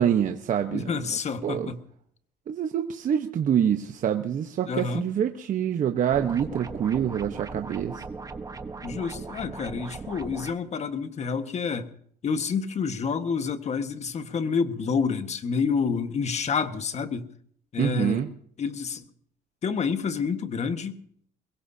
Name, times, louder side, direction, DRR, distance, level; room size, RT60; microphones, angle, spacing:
voice 1, 0.0-0.9 1.4-1.7 2.5-8.0 17.8-18.3, right 9 dB, 50° right, 1.1 m, -26 dB
voice 2, 0.7-1.8 4.7-5.1 8.8-11.9 12.2-17.3 17.7-18.2 18.6-19.1 19.6-21.0, left 5 dB, 40° left, 1.6 m, -28 dB
sound 1, 6.1-10.5, right 4 dB, 20° right, 1.2 m, -38 dB
23.0 x 21.5 x 2.8 m
cardioid pair, 110°, 17 cm